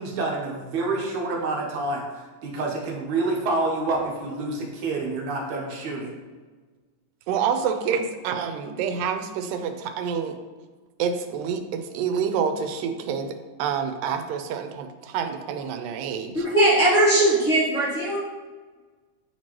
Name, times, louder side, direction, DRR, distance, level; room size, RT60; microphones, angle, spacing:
voice 1, 0.0-6.1, right 3 dB, 70° right, -1 dB, 2.2 m, -28 dB
voice 2, 7.3-10.4 11.0-16.3, right 7 dB, 90° right, 7 dB, 2.3 m, -27 dB
voice 3, 16.3-18.2, right 1 dB, 55° left, -10 dB, 1.2 m, -19 dB
8.8 x 4.5 x 3.0 m, 1.4 s
omnidirectional pair, 3.8 m